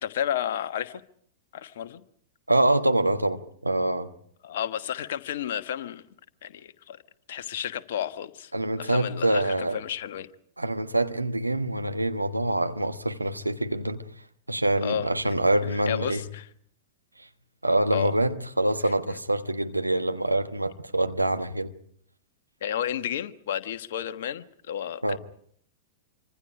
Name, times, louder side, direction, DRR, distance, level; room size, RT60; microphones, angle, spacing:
voice 1, 0.0-1.0 1.5-2.0 4.4-6.0 6.4-7.0 7.3-8.5 8.8-10.3 14.8-15.1 15.9-16.4 17.9-18.1 22.6-25.2, left 10 dB, 60° left, 1.3 m, -31 dB
voice 2, 2.5-4.1 8.5-9.8 10.6-14.0 14.5-16.2 17.2-17.3 17.6-21.7 25.0-25.2, right 1 dB, 90° right, 1.3 m, -25 dB
26.5 x 25.0 x 5.0 m
figure-of-eight pair, 100°, 0 cm